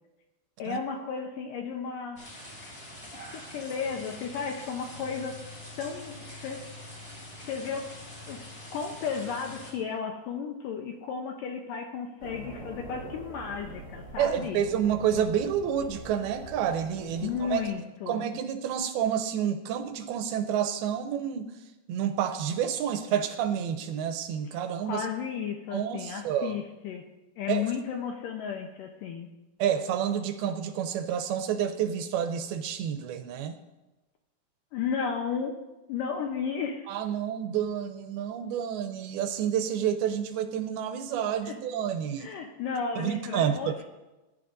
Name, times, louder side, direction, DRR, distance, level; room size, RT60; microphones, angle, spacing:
voice 1, 0.6-2.3 3.2-5.4 5.8-6.6 6.9-7.0 7.4-7.9 8.3-8.4 8.7-14.6 17.2-18.2 24.8-27.0 27.4-29.3 34.7-35.6 35.9-37.0 41.4-41.6 42.2-43.8, left 6 dB, 75° left, 3 dB, 2.0 m, -34 dB
sound 1, 2.2-9.7, left 1 dB, 15° left, 3.8 m, -44 dB
sound 2, 12.2-17.7, right 2 dB, 30° right, 2.0 m, -44 dB
voice 2, 14.2-17.7 18.1-21.5 21.9-25.1 25.7-26.6 27.5-27.7 29.6-33.6 36.9-42.3 43.0-43.8, right 9 dB, 80° right, 8 dB, 2.4 m, -29 dB
20.0 x 10.5 x 2.6 m, 1.1 s
omnidirectional pair, 4.7 m